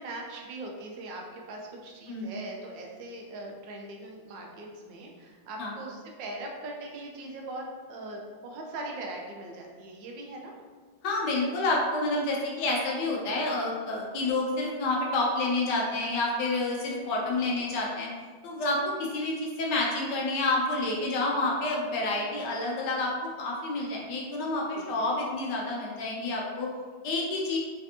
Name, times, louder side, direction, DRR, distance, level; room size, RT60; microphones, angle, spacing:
voice 1, 0.0-10.5 17.2-17.4 24.7-25.0, right 2 dB, 75° right, 0 dB, 1.3 m, -40 dB
voice 2, 11.0-18.1 18.4-23.1 23.4-26.7 27.0-27.6, left 2 dB, 70° left, -2 dB, 1.2 m, -29 dB
3.3 x 3.3 x 2.8 m, 1.5 s
omnidirectional pair, 2.2 m